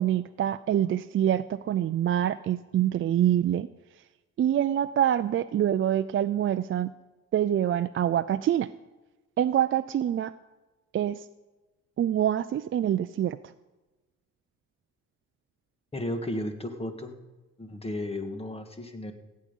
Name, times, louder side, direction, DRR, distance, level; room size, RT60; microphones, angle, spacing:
voice 1, 0.0-3.7 4.4-6.9 7.3-8.7 9.4-10.3 10.9-11.3 12.0-13.4, right 11 dB, 45° right, 11 dB, 0.4 m, -25 dB
voice 2, 15.9-17.1 17.6-19.1, left 1 dB, 20° left, 7 dB, 1.7 m, -34 dB
16.5 x 8.7 x 5.4 m, 1.1 s
cardioid pair, 90°, 30 cm